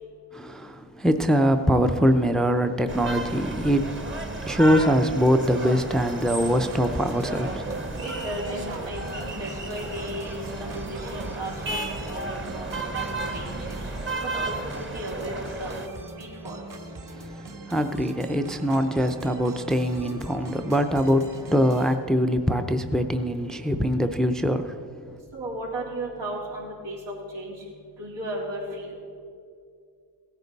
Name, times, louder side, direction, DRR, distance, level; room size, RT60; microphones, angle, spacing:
voice 1, 0.3-8.0 17.1-24.8 25.1-25.2, equal, ahead, 8 dB, 0.5 m, -23 dB
sound 1, 2.9-15.9, right 2 dB, 25° right, 1.1 m, -33 dB
sound 2, 6.0-22.0, right 2 dB, 45° right, 1.4 m, -42 dB
voice 2, 8.0-13.1 13.3-13.8 14.2-14.5 14.9-15.7 16.2-16.6 25.3-27.5 28.0-29.0, right 1 dB, 85° right, -6 dB, 3.7 m, -35 dB
16.0 x 9.9 x 4.1 m, 2.4 s
cardioid pair, 80°, 44 cm